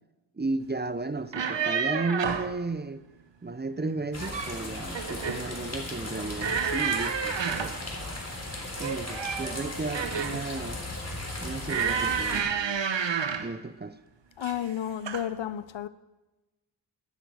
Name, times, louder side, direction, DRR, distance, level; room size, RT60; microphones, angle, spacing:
voice 1, 0.3-3.0 3.4-7.8 8.8-10.8 11.4-12.5 13.4-14.0, right 3 dB, 25° right, 0.6 m, -34 dB
sound 1, 1.2-2.5 4.0-4.6 4.9-5.5 6.4-7.8 8.8-10.5 11.7-13.5 14.4-14.7 15.1-15.3, right 6 dB, 75° right, 1.1 m, -30 dB
sound 2, 4.1-12.4, left 1 dB, 35° left, 3.6 m, -37 dB
voice 2, 14.4-15.9, left 10 dB, 80° left, 0.7 m, -32 dB
11.5 x 10.0 x 7.8 m
wide cardioid pair, 80°, 45 cm